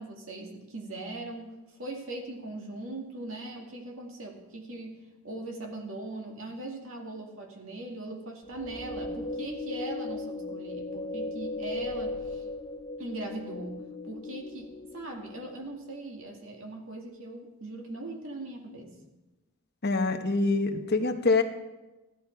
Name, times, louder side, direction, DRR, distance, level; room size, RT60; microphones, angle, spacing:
voice 1, 0.0-5.0 5.2-12.5 13.0-13.8 14.0-19.0, right 2 dB, 65° right, 1 dB, 2.3 m, -40 dB
sound 1, 8.5-15.8, left 2 dB, 20° left, 0.7 m, -37 dB
voice 2, 19.8-21.4, left 3 dB, 45° left, 6 dB, 1.0 m, -25 dB
14.5 x 11.0 x 4.7 m, 1.1 s
head